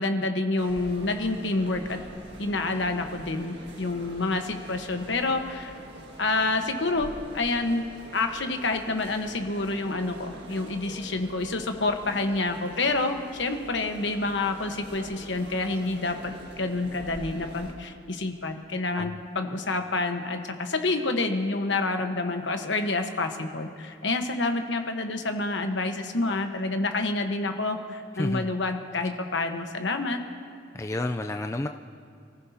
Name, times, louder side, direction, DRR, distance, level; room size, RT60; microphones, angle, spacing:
voice 1, 0.0-2.0 2.4-5.7 6.2-7.8 8.1-30.2, left 2 dB, 70° left, 5 dB, 1.2 m, -28 dB
sound 1, 0.6-17.7, right 1 dB, 60° right, 1.8 m, -45 dB
voice 2, 28.2-28.5 30.7-31.7, left 2 dB, 15° left, 5 dB, 0.4 m, -30 dB
28.5 x 15.0 x 2.8 m, 2.5 s
head